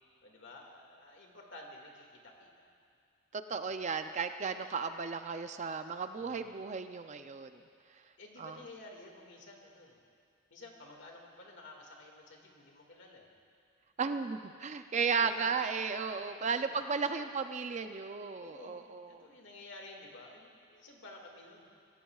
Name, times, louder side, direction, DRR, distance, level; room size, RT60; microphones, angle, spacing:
voice 1, 0.2-2.7 6.2-6.6 8.2-10.0 10.5-13.3 15.2-15.5 16.3-16.8 17.2-17.4 18.4-21.7, left 2 dB, 60° left, 0 dB, 2.1 m, -52 dB
voice 2, 3.3-7.6 8.4-8.6 14.0-19.3, right 5 dB, 35° right, 8 dB, 0.5 m, -35 dB
24.0 x 15.5 x 2.4 m, 2.3 s
head